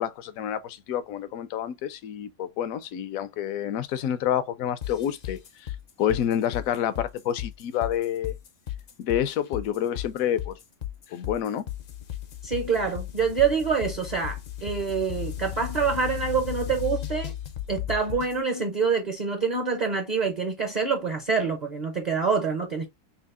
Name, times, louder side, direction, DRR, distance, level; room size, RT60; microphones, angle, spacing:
voice 1, 0.0-5.7 6.0-8.3 9.0-10.6 11.1-11.7, left 10 dB, 75° left, 1.0 m, -28 dB
sound 1, 4.8-18.4, left 11 dB, 55° left, 0.6 m, -35 dB
voice 2, 12.4-17.3 17.7-22.9, right 5 dB, 40° right, 0.7 m, -26 dB
5.6 x 2.4 x 2.4 m
omnidirectional pair, 1.5 m